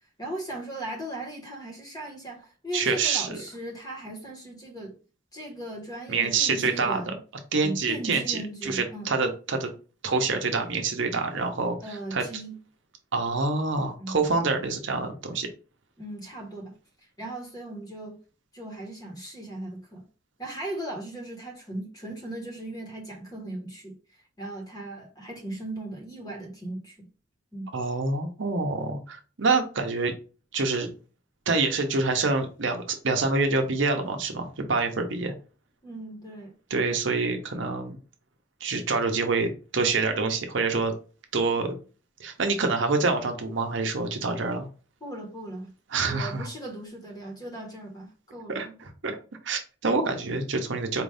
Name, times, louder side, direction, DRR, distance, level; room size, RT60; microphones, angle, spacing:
voice 1, 0.2-5.0 5.3-7.2 7.6-9.2 11.8-12.6 14.0-14.2 16.0-16.7 17.2-18.2 18.5-20.0 20.4-24.0 24.4-27.1 27.5-27.7 35.8-36.5 45.0-45.7 46.0-48.8, right 1 dB, 20° left, 1.3 m, -38 dB
voice 2, 2.7-3.4 6.1-7.0 7.5-9.7 10.0-12.2 13.1-15.5 27.7-30.1 30.5-30.9 31.5-35.3 36.7-38.0 38.6-40.9 41.3-41.7 42.2-44.7 45.9-46.5 48.5-49.2 49.4-51.0, right 3 dB, 65° right, 0.8 m, -26 dB
4.5 x 2.6 x 3.3 m
head